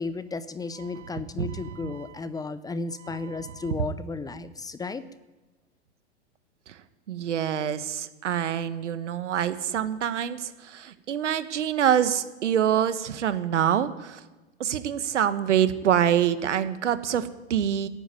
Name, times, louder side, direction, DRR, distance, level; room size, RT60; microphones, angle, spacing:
voice 1, 0.0-5.0, left 4 dB, 10° left, 13 dB, 0.6 m, -34 dB
voice 2, 0.9-2.1 3.1-3.5 6.7-6.8 7.1-14.2 14.6-17.9, right 9 dB, 85° right, 12 dB, 1.3 m, -26 dB
13.5 x 8.9 x 9.1 m, 1.1 s
hypercardioid pair, 115°, 35 cm